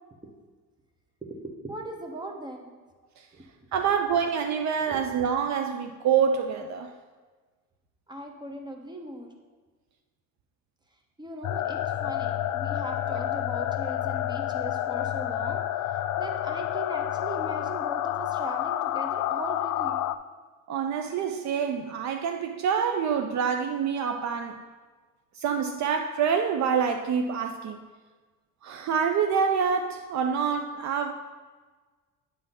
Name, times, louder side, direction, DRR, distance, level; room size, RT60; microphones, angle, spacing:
voice 1, 1.3-2.8 3.3-3.4 4.9-5.0 8.1-9.3 11.2-15.6 16.2-20.0, right 2 dB, 15° right, 3 dB, 1.1 m, -39 dB
voice 2, 3.7-6.9 20.7-24.6 25.4-27.8 28.6-31.1, right 7 dB, 55° right, 7 dB, 0.6 m, -26 dB
sound 1, 11.4-20.2, left 12 dB, 60° left, 0.4 m, -29 dB
9.2 x 3.7 x 5.9 m, 1.4 s
cardioid pair, 110°, 33 cm